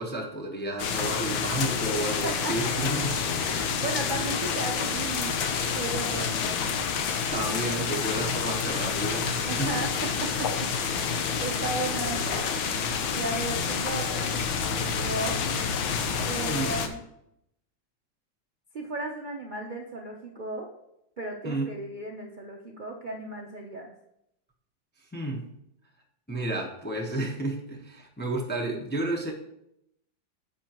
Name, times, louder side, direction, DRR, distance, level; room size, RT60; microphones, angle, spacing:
voice 1, 0.0-3.3 7.3-9.8 16.5-16.7 21.4-21.7 25.1-25.5 26.3-29.3, right 2 dB, 10° left, 0 dB, 0.5 m, -31 dB
sound 1, 0.8-16.9, left 6 dB, 80° left, 1.5 m, -28 dB
voice 2, 2.2-2.5 3.4-5.4 5.7-6.8 9.4-12.5 13.1-15.4 16.2-17.0 18.7-20.7 21.2-23.9, right 2 dB, 70° right, 0 dB, 0.4 m, -35 dB
10.5 x 7.2 x 3.0 m, 0.80 s
omnidirectional pair, 2.1 m